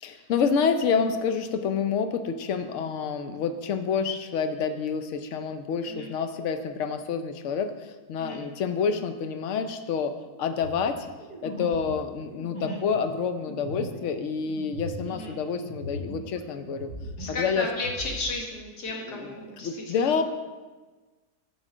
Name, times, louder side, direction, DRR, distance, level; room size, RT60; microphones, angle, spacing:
voice 1, 0.0-11.1 11.4-16.9 17.3-17.7 19.1-19.3 19.6-20.2, left 6 dB, 60° left, 8 dB, 0.8 m, -28 dB
sound 1, 10.6-16.4 16.6-18.2, left 1 dB, 25° left, 1.0 m, -39 dB
voice 2, 15.1-15.4 17.2-20.2, left 2 dB, 80° left, -1 dB, 2.0 m, -35 dB
8.0 x 6.3 x 5.0 m, 1.3 s
omnidirectional pair, 1.7 m